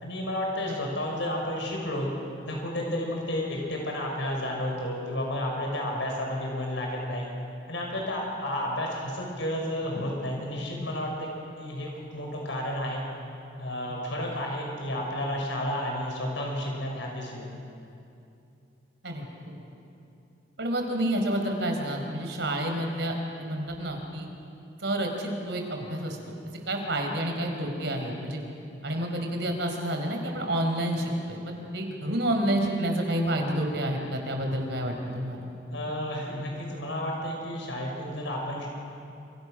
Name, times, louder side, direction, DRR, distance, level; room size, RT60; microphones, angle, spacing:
voice 1, 0.0-2.1 2.5-7.3 7.7-11.3 11.6-13.0 13.6-17.5 35.7-38.7, left 1 dB, 75° left, -1 dB, 5.7 m, -31 dB
voice 2, 20.6-24.3 24.8-26.3 26.7-28.4 28.8-35.5, right 1 dB, 65° right, 3 dB, 4.6 m, -29 dB
28.5 x 28.0 x 6.4 m, 2.7 s
head